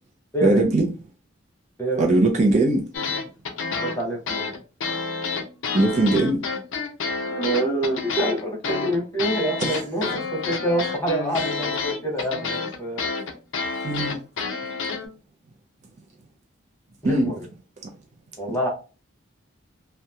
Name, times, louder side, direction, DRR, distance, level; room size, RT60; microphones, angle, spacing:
voice 1, 0.4-0.9 2.0-2.8 5.7-6.4 9.6-9.8 13.8-14.2 17.0-17.3 18.5-18.7, right 2 dB, 35° right, 0.4 m, -20 dB
sound 1, 2.9-15.1, left 4 dB, 65° left, 0.5 m, -29 dB
voice 2, 3.7-4.5 7.2-13.0 17.0-17.5 18.4-18.7, right 1 dB, 15° left, 0.7 m, -26 dB
2.7 x 2.1 x 2.3 m
head